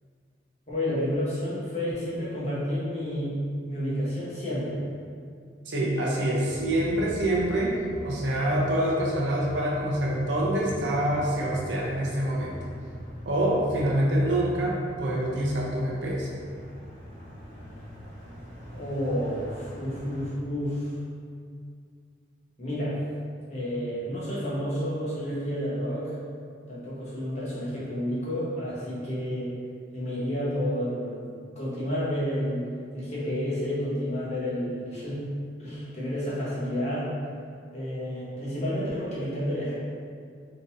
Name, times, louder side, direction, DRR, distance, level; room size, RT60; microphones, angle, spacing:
voice 1, 0.7-4.8 18.7-20.9 22.6-23.0 23.5-26.2 26.7-29.5 29.9-31.3 31.5-32.7 32.9-35.2 35.6-37.1 37.7-39.7, equal, 35° left, -9 dB, 1.0 m, -30 dB
voice 2, 5.7-7.7 8.0-12.6 13.2-16.3, right 1 dB, 75° right, -4 dB, 0.6 m, -26 dB
sound 1, 6.4-20.3, equal, 45° right, 1.3 m, -42 dB
3.8 x 2.8 x 2.6 m, 2.2 s
head